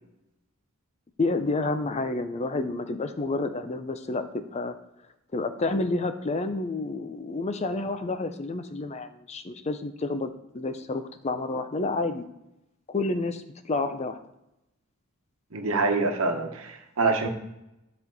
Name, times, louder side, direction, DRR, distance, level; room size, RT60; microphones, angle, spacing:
voice 1, 1.2-4.8 5.3-10.3 10.5-12.2 12.9-14.2, left 3 dB, 30° left, 9 dB, 0.5 m, -29 dB
voice 2, 15.5-17.3, right 3 dB, 70° right, 3 dB, 1.1 m, -25 dB
9.9 x 4.3 x 4.0 m, 0.89 s
head